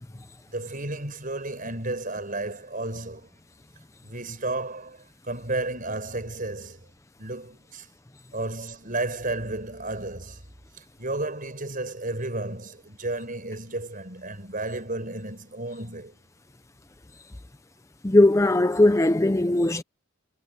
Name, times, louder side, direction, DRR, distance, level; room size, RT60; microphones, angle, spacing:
voice 1, 0.5-3.3 4.0-6.9 7.2-7.9 8.3-10.4 10.7-16.1, right 2 dB, 40° right, 5.6 m, -33 dB
voice 2, 18.0-19.8, left 1 dB, 15° left, 0.5 m, -19 dB
head